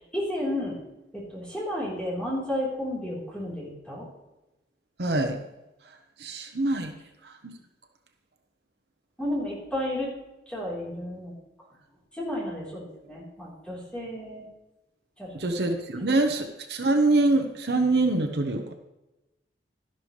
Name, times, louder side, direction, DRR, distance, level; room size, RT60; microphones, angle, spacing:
voice 1, 0.1-0.8 1.1-4.1 9.2-10.1 10.5-11.3 12.2-14.5 15.2-15.3, left 1 dB, 5° left, -6 dB, 3.8 m, -32 dB
voice 2, 5.0-5.4 6.2-6.9 15.3-18.6, right 2 dB, 65° right, 5 dB, 1.0 m, -24 dB
12.0 x 11.5 x 3.3 m, 0.99 s
head